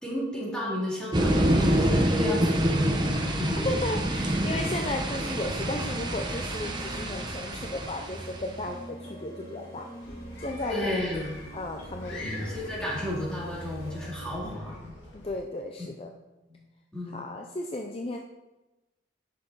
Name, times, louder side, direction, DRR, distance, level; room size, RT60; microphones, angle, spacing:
voice 1, 0.0-3.7 10.7-11.4 12.1-14.9 15.8-15.9 16.5-16.6 16.9-17.2, left 1 dB, 5° left, -5 dB, 2.4 m, -33 dB
sound 1, 1.1-8.6, right 1 dB, 25° right, 0.9 m, -26 dB
voice 2, 3.5-9.9 10.4-11.2 11.5-12.3 12.8-12.9 15.1-16.1 17.1-18.2, left 2 dB, 30° left, 3 dB, 0.6 m, -35 dB
sound 2, 6.1-14.4, right 1 dB, 55° left, 3.5 m, -44 dB
sound 3, 10.0-15.4, left 1 dB, 85° left, 2.3 m, -42 dB
10.5 x 6.7 x 4.1 m, 1.0 s
head